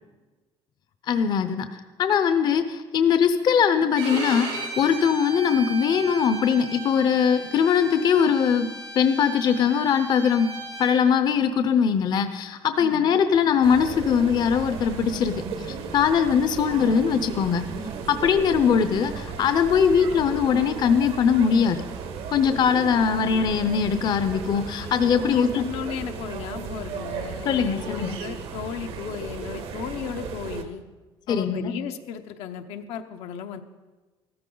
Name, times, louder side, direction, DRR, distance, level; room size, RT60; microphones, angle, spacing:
voice 1, 1.1-1.7 2.0-8.7 8.9-10.5 10.8-17.6 18.1-21.8 22.3-25.6 27.4-28.2 31.3-31.7, left 7 dB, 45° left, 10 dB, 0.6 m, -21 dB
Bowed string instrument, 4.0-10.9, right 2 dB, 85° right, 4.9 m, -36 dB
voice 2, 12.8-13.2 23.1-23.3 25.3-30.8 31.3-33.6, left 8 dB, 80° left, 6 dB, 0.8 m, -35 dB
sound 1, 13.6-30.6, right 5 dB, 65° right, 1.2 m, -35 dB
14.5 x 13.5 x 3.9 m, 1.3 s
cardioid pair, 145°, 10 cm